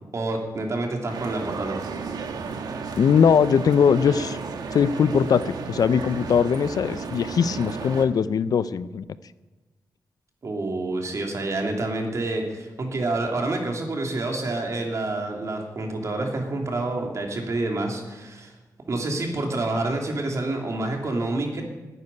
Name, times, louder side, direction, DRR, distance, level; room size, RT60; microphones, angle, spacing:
voice 1, 0.1-1.8 10.4-18.5 18.9-21.6, right 2 dB, 50° right, 2 dB, 3.0 m, -28 dB
sound 1, 1.1-8.1, right 5 dB, 75° right, 1.4 m, -33 dB
voice 2, 3.0-4.4 4.7-9.0, left 7 dB, 65° left, 16 dB, 0.5 m, -20 dB
11.0 x 9.6 x 10.0 m, 1.2 s
cardioid pair, 100°, 7 cm